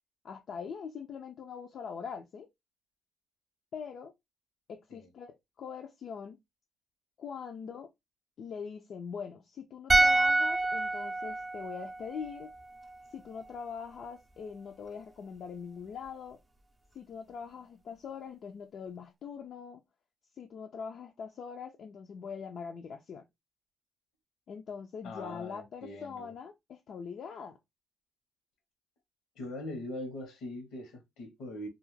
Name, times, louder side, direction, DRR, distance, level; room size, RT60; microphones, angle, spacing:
voice 1, 0.2-2.5 3.7-4.1 4.7-6.4 7.2-7.9 8.4-12.5 13.1-16.4 16.9-19.8 20.3-23.2 24.5-27.6, left 6 dB, 60° left, 0.3 m, -42 dB
sound 1, 9.9-13.1 13.4-13.5, right 2 dB, 25° right, 0.4 m, -28 dB
voice 2, 25.0-26.3 29.3-31.7, left 1 dB, 85° left, 0.9 m, -41 dB
2.3 x 2.0 x 3.0 m
cardioid pair, 90°, 0 cm